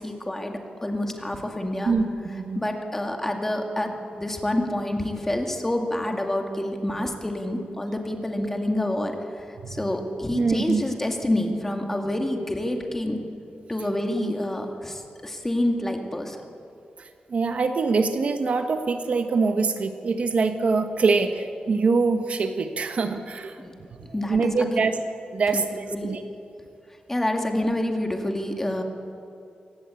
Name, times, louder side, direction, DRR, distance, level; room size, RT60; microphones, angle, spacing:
voice 1, 0.0-1.9 2.6-13.2 13.7-16.4 23.6-23.7 24.1-24.8 25.5-25.6 25.9-26.2 27.1-28.8, left 1 dB, 10° left, 3 dB, 2.3 m, -28 dB
voice 2, 1.8-2.6 9.6-9.7 10.3-10.8 14.2-14.3 17.0-23.6 24.0-24.9 25.3-26.2, right 4 dB, 50° right, 7 dB, 1.3 m, -24 dB
25.0 x 18.5 x 8.5 m, 2.5 s
wide cardioid pair, 160°, 3 cm